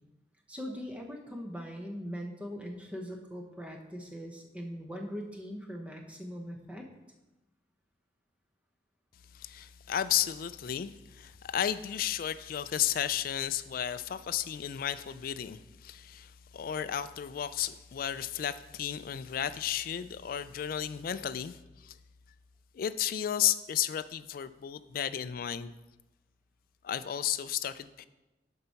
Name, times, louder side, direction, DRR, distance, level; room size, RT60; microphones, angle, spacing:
voice 1, 0.5-6.9, equal, 5° right, 2 dB, 0.8 m, -41 dB
voice 2, 9.3-21.6 21.8-21.9 22.7-25.7 26.8-28.1, left 10 dB, 55° left, 14 dB, 0.3 m, -33 dB
6.7 x 4.6 x 5.7 m, 1.0 s
head